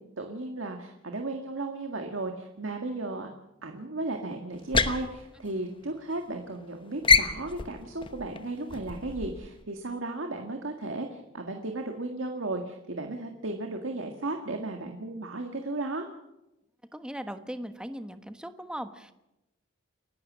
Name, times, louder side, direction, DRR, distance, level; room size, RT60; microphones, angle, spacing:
voice 1, 0.2-3.3 3.6-16.1, right 2 dB, 80° right, 4 dB, 1.9 m, -35 dB
sound 1, 4.5-6.2 6.5-6.7 7.0-9.6, left 5 dB, 25° left, 1.0 m, -27 dB
voice 2, 16.9-19.1, equal, 5° right, 9 dB, 1.2 m, -38 dB
29.5 x 12.0 x 7.5 m, 0.92 s
head